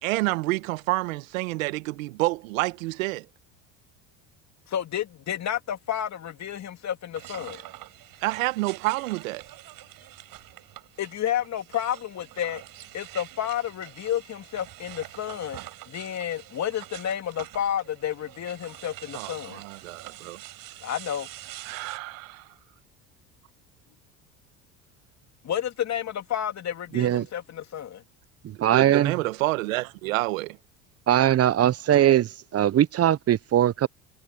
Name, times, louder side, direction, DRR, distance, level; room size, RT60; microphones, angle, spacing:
voice 1, 0.0-3.3 8.2-9.4 19.1-20.4 21.6-22.4 28.7-30.6, right 21 dB, 85° right, 1.6 m, -28 dB
voice 2, 4.7-7.6 11.0-12.6 12.9-15.6 15.9-19.6 20.8-21.3 25.4-28.0, left 10 dB, 45° left, 2.6 m, -31 dB
sound 1, 7.1-22.0, right 15 dB, 60° right, 5.9 m, -45 dB
voice 3, 26.9-27.3 28.6-29.1 31.1-32.3 32.5-33.9, right 11 dB, 40° right, 0.8 m, -20 dB
hypercardioid pair, 75°, 39 cm